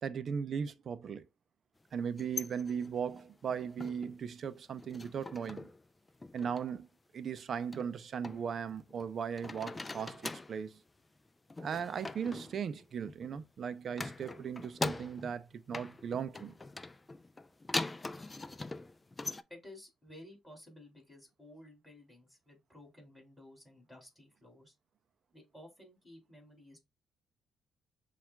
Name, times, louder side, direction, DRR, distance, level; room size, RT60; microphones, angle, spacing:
voice 1, 0.0-1.2 1.9-5.7 6.3-6.9 7.1-10.8 11.6-16.6, right 7 dB, 55° right, 0.4 m, -38 dB
sound 1, 2.1-4.2 4.6-5.8 6.1-6.7 7.7-9.1 9.4-10.6 11.5-13.5 13.9-15.4 15.7-19.4, left 2 dB, 20° left, 0.3 m, -42 dB
voice 2, 19.5-24.7 25.3-26.8, left 1 dB, ahead, 2.8 m, -54 dB
6.9 x 2.4 x 2.2 m
cardioid pair, 90°, 0 cm